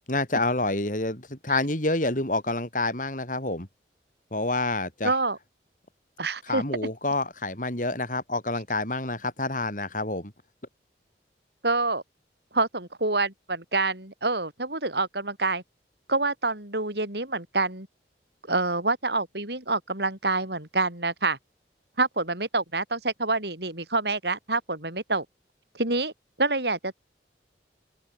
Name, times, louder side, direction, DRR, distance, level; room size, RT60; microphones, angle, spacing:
voice 1, 0.1-3.7 4.3-5.1 6.5-10.3, left 2 dB, 45° left, 5.0 m, -28 dB
voice 2, 5.0-5.4 6.2-6.6 11.6-12.0 12.5-15.6 16.1-17.9 18.4-21.4 22.0-25.3 25.7-26.1 26.4-27.0, right 3 dB, 70° right, 7.6 m, -27 dB
head